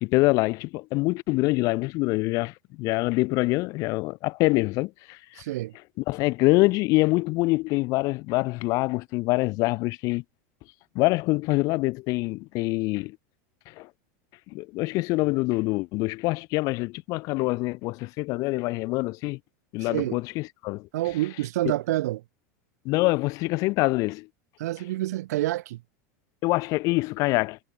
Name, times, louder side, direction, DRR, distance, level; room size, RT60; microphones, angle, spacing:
voice 1, 0.0-5.2 6.1-10.2 10.9-13.2 13.8-13.9 14.5-19.4 19.7-20.9 22.8-24.3 26.4-27.6, left 22 dB, 40° left, 0.5 m, -25 dB
voice 2, 5.4-5.7 19.8-20.2 20.9-22.2 24.6-25.8, right 16 dB, 85° right, 1.7 m, -28 dB
supercardioid pair, 155°, 9 cm